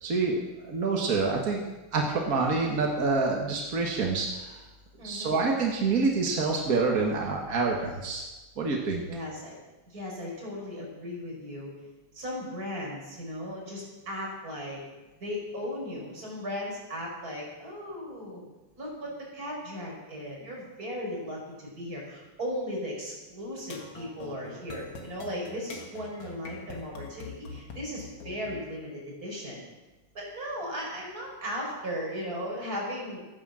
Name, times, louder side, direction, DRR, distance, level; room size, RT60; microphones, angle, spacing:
voice 1, 0.0-1.6 1.9-4.6 5.0-8.2 8.6-9.0, right 4 dB, 45° right, 0 dB, 1.2 m, -27 dB
voice 2, 5.0-5.4 9.1-9.6 9.9-11.7 12.1-14.8 15.2-18.4 18.8-29.6 30.1-33.2, equal, 25° right, -3 dB, 5.3 m, -37 dB
sound 1, 23.6-28.6, left 4 dB, 50° left, 2.3 m, -43 dB
14.0 x 9.8 x 7.6 m, 1.1 s
omnidirectional pair, 3.7 m